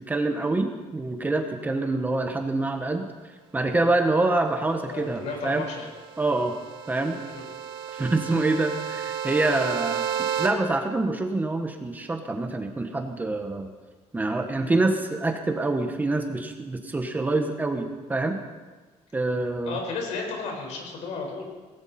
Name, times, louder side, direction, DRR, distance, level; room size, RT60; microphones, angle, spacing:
voice 1, 0.0-3.1 3.5-5.6 6.2-6.5 6.9-7.2 7.9-13.7 14.1-18.4 19.1-19.8, right 2 dB, 15° right, 5 dB, 1.1 m, -26 dB
voice 2, 4.9-5.9 7.3-7.4 19.6-21.4, left 4 dB, 75° left, 1 dB, 4.7 m, -33 dB
sound 1, 5.5-10.5, right 8 dB, 45° right, 1.9 m, -32 dB
18.0 x 17.0 x 4.3 m, 1.3 s
cardioid pair, 150°, 12 cm